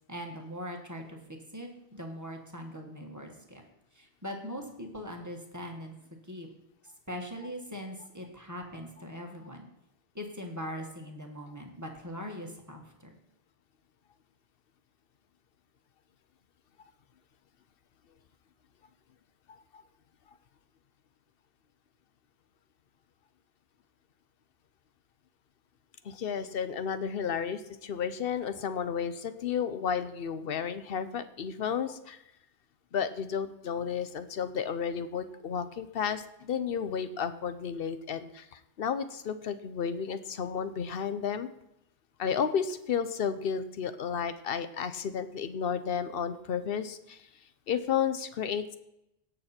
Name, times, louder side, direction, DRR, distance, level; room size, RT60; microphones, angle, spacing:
voice 1, 0.1-3.6 3.9-5.9 6.2-6.5 7.1-9.7 10.1-13.1, equal, 15° right, 2 dB, 1.6 m, -41 dB
voice 2, 19.5-19.8 26.0-32.2 32.9-41.5 42.2-47.3 47.7-48.8, left 7 dB, 65° left, 12 dB, 0.9 m, -32 dB
17.0 x 6.7 x 4.3 m, 0.86 s
omnidirectional pair, 1.1 m